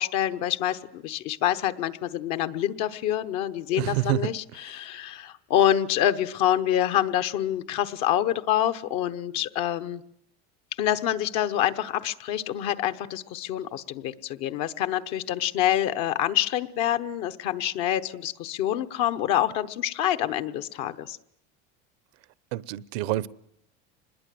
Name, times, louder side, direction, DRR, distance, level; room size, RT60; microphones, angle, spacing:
voice 1, 0.0-10.0 10.8-21.2, left 11 dB, 65° left, 9 dB, 1.2 m, -26 dB
voice 2, 3.8-4.2 22.5-23.3, right 17 dB, 85° right, 19 dB, 0.9 m, -27 dB
26.0 x 21.0 x 7.7 m, 0.72 s
cardioid pair, 135°, 30 cm